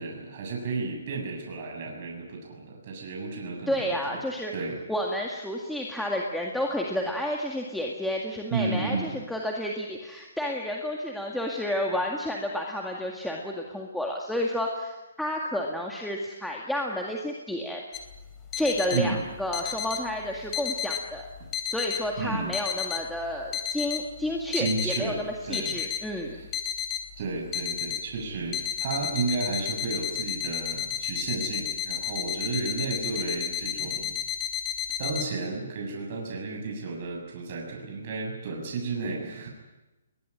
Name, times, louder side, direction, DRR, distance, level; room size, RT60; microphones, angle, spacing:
voice 1, 0.0-4.2 4.5-4.8 8.5-9.2 18.9-19.2 22.2-22.5 24.5-25.8 27.2-34.2 35.0-39.5, right 4 dB, 40° right, 0 dB, 7.2 m, -32 dB
voice 2, 3.7-4.5 4.9-17.8 18.6-21.3 21.7-26.4, left 1 dB, ahead, -1 dB, 2.0 m, -31 dB
sound 1, 17.9-35.3, left 9 dB, 15° left, 3.1 m, -32 dB
21.5 x 21.0 x 9.8 m, 1.1 s
hypercardioid pair, 155°, 0 cm